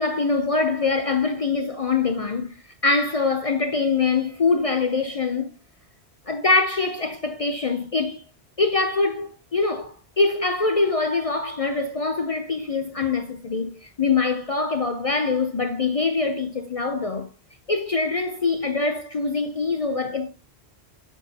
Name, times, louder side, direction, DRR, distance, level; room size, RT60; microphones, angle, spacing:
voice 1, 0.0-2.6 2.8-5.5 6.3-8.2 8.6-17.3 17.7-20.3, left 4 dB, 45° left, 0.5 m, -24 dB
9.1 x 4.2 x 2.8 m
omnidirectional pair, 1.1 m